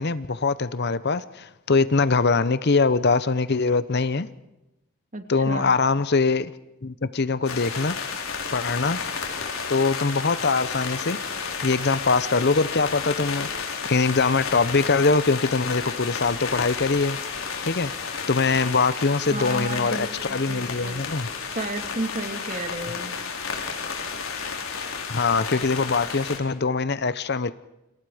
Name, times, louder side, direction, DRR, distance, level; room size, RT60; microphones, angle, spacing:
voice 1, 0.0-4.3 5.3-6.5 6.8-8.0 8.5-9.0 9.7-11.2 11.6-17.2 17.6-17.9 18.3-21.3 25.1-27.5, left 4 dB, 50° left, 0.8 m, -23 dB
voice 2, 5.1-5.7 19.3-21.0 21.5-23.2, right 2 dB, 35° right, 2.8 m, -33 dB
sound 1, 7.4-26.4, left 5 dB, 70° left, 4.4 m, -32 dB
29.5 x 26.5 x 5.0 m
head